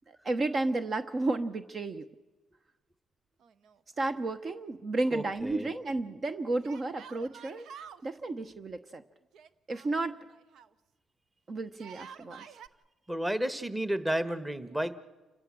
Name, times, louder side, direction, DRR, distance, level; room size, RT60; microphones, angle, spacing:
voice 1, 0.1-2.1 4.0-7.7 8.0-9.0 9.7-10.2 11.5-12.5, right 2 dB, 45° right, 10 dB, 1.0 m, -32 dB
Yell, 3.4-4.3 4.5-4.6 6.6-8.0 9.3-10.7 11.7-12.7, right 7 dB, 75° right, 0.8 m, -49 dB
voice 2, 5.1-5.7 13.1-14.9, right 1 dB, 10° right, 12 dB, 1.4 m, -31 dB
29.0 x 16.0 x 7.6 m, 1.2 s
cardioid pair, 90°, 0 cm